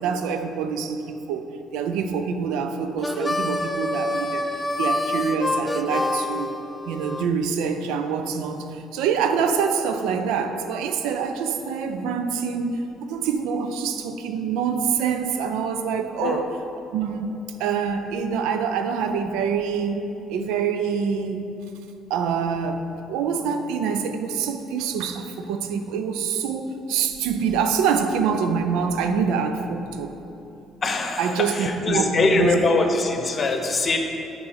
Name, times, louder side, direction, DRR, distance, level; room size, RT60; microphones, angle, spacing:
voice 1, 0.0-1.5 1.7-4.5 4.8-6.5 6.9-16.6 16.9-21.4 22.1-30.1 31.2-32.5, right 6 dB, 70° right, 8 dB, 0.4 m, -25 dB
Harmonica, 3.0-7.3, left 2 dB, 20° left, 0.5 m, -27 dB
voice 2, 30.8-34.0, left 3 dB, 40° left, 4 dB, 0.8 m, -22 dB
6.7 x 5.2 x 5.0 m, 2.9 s
figure-of-eight pair, 50°, 0 cm